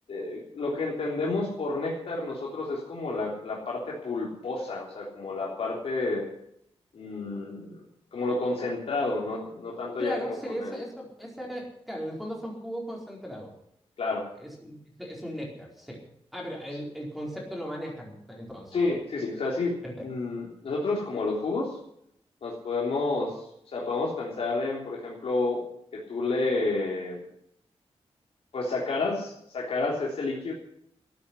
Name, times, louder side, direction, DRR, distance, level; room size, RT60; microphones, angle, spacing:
voice 1, 0.1-6.3 6.9-7.8 8.1-10.8 14.0-14.3 18.7-19.8 20.0-21.8 22.4-23.5 23.7-25.6 25.9-27.2 28.5-30.5, left 3 dB, 65° left, -4 dB, 3.6 m, -30 dB
voice 2, 10.0-13.5 14.4-16.0 16.3-18.8 19.8-20.0, equal, ahead, -2 dB, 4.5 m, -37 dB
14.5 x 8.8 x 9.9 m, 0.73 s
wide cardioid pair, 160°, 11 cm